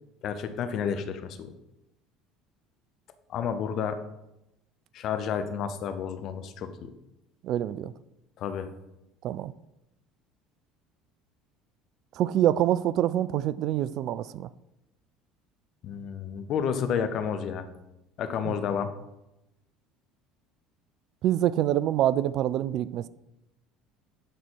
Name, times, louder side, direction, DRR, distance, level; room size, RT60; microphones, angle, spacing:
voice 1, 0.2-1.5 3.3-4.0 4.9-6.9 8.4-8.7 15.8-17.7 18.2-18.9, left 7 dB, 55° left, 0.8 m, -30 dB
voice 2, 7.4-7.9 9.2-9.5 12.1-14.5 18.4-18.5 21.2-23.1, right 12 dB, 55° right, 0.3 m, -26 dB
11.0 x 4.2 x 4.7 m
hypercardioid pair, 65°, 0 cm